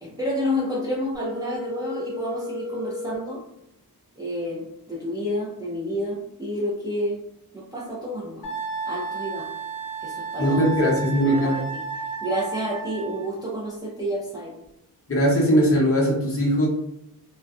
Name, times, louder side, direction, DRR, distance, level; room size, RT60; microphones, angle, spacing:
voice 1, 0.0-3.4 4.2-7.2 7.5-8.4 8.8-9.5 10.0-10.7 11.3-11.6 12.2-14.5, equal, 10° right, -5 dB, 0.5 m, -29 dB
Telephone, 1.1-3.1, left 2 dB, 50° right, 1.1 m, -33 dB
Wind instrument woodwind instrument, 8.4-13.3, right 4 dB, 70° left, 0.9 m, -32 dB
voice 2, 10.4-11.6 15.1-16.7, equal, 35° left, -4 dB, 0.7 m, -20 dB
2.6 x 2.2 x 2.2 m, 0.78 s
wide cardioid pair, 170°, 38 cm